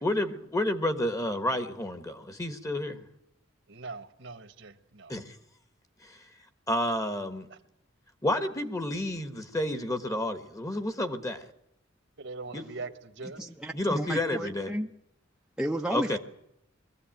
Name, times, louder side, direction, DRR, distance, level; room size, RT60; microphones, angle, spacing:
voice 1, 0.0-3.0 5.1-5.3 6.0-6.2 6.7-7.5 8.2-11.4 12.5-12.6 13.7-14.7 15.9-16.2, left 1 dB, 15° left, 9 dB, 1.4 m, -30 dB
voice 2, 3.7-5.1 12.2-13.4, right 3 dB, 70° right, 9 dB, 1.6 m, -41 dB
voice 3, 13.4-14.9 15.6-16.2, right 1 dB, 5° right, 0 dB, 0.8 m, -32 dB
22.0 x 15.5 x 9.0 m, 0.84 s
head